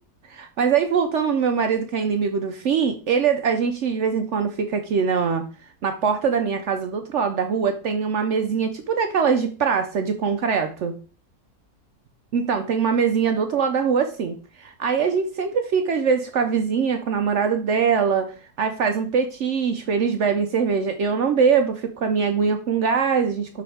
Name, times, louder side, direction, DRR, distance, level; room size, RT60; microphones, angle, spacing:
voice 1, 0.3-5.4 5.8-11.0 12.3-23.6, right 6 dB, 65° right, 6 dB, 0.8 m, -22 dB
5.9 x 4.9 x 3.3 m, 0.36 s
omnidirectional pair, 1.6 m